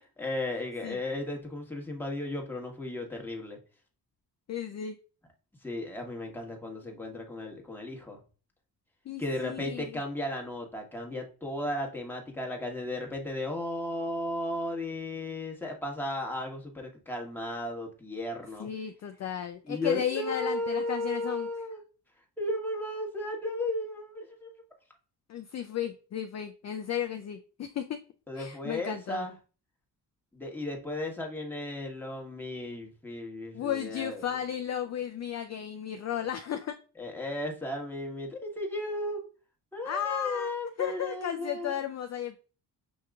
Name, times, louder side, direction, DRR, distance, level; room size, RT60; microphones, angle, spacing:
voice 1, 0.2-3.6 5.6-8.2 9.2-18.7 19.7-21.8 22.4-24.5 28.3-29.4 30.3-34.3 37.0-39.2 39.7-41.8, left 1 dB, 5° left, 1 dB, 1.2 m, -35 dB
voice 2, 4.5-5.0 9.1-10.0 18.6-21.5 25.3-28.0 28.4-29.3 33.5-36.7 39.8-40.5 40.8-42.4, left 9 dB, 40° left, 6 dB, 0.4 m, -34 dB
6.3 x 2.9 x 2.3 m, 0.36 s
cardioid pair, 90°, 41 cm